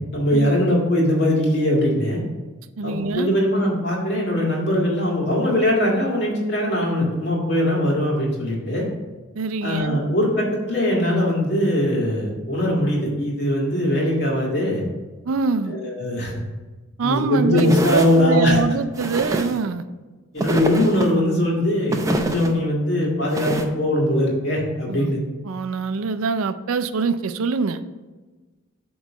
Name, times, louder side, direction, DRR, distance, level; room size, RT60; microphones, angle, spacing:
voice 1, 0.1-2.2 2.8-8.9 9.6-14.8 15.7-16.3 17.0-18.6 20.3-25.2, left 1 dB, 55° left, -3 dB, 1.9 m, -21 dB
voice 2, 2.8-3.4 9.4-10.0 15.3-15.7 17.0-19.8 24.9-25.1 25.5-27.8, right 4 dB, 85° right, 12 dB, 0.4 m, -24 dB
sound 1, 17.6-18.2 19.0-19.6 20.4-21.1 21.9-22.5 23.3-23.6, right 1 dB, 15° right, 0.5 m, -26 dB
8.1 x 3.1 x 6.2 m, 1.2 s
head